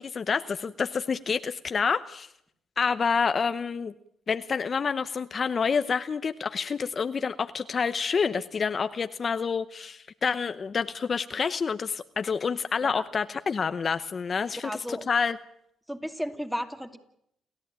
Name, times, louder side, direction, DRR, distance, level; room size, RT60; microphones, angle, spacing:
voice 1, 0.0-2.3 2.8-3.9 4.3-15.4, left 5 dB, 40° left, 10 dB, 0.8 m, -28 dB
voice 2, 14.6-15.1 15.9-17.0, equal, 5° right, 7 dB, 2.6 m, -34 dB
29.5 x 14.0 x 8.9 m, 0.76 s
cardioid pair, 90°, 0 cm